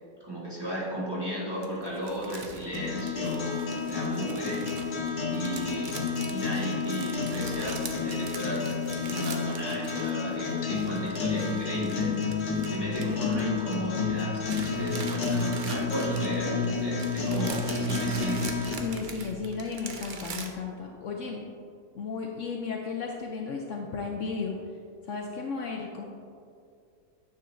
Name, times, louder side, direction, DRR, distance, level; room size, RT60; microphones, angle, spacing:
voice 1, 0.2-3.6 3.9-4.7 5.3-8.7 9.0-12.2 12.7-18.4, equal, 15° right, -7 dB, 1.3 m, -35 dB
sound 1, 1.6-10.3 10.6-13.9 14.2-20.5, right 4 dB, 60° right, 0.5 m, -42 dB
sound 2, 2.7-18.7, left 4 dB, 85° left, 1.6 m, -30 dB
voice 2, 18.8-21.4 21.9-24.5 25.0-26.0, left 5 dB, 65° left, 1 dB, 0.8 m, -34 dB
9.2 x 6.8 x 2.6 m, 2.4 s
omnidirectional pair, 1.6 m